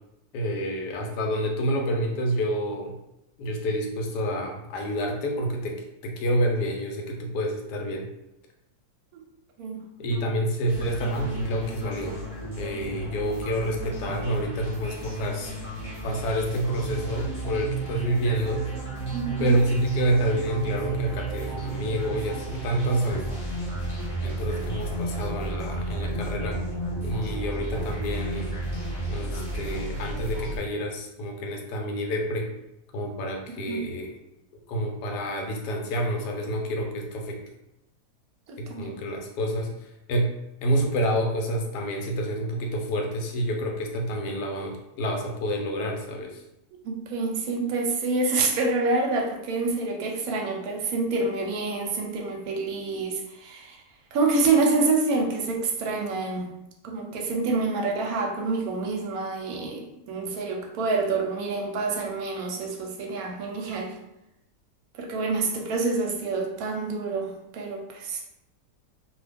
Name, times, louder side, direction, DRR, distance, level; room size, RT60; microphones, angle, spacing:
voice 1, 0.3-2.9 3.4-5.8 6.0-8.1 10.0-12.2 12.6-15.5 16.0-18.7 19.4-23.2 24.2-26.6 27.0-28.5 29.1-32.5 32.9-34.2 34.7-37.4 38.6-40.3 40.6-46.4, equal, 85° left, 1 dB, 1.2 m, -28 dB
sound 1, 10.7-30.6, right 2 dB, 25° left, 0.8 m, -32 dB
voice 2, 19.1-19.5 33.7-33.8 38.5-38.9 46.8-53.8 54.1-56.5 56.8-63.9 64.9-68.2, right 3 dB, 70° right, 2 dB, 1.0 m, -27 dB
2.8 x 2.3 x 3.3 m, 0.86 s
omnidirectional pair, 1.8 m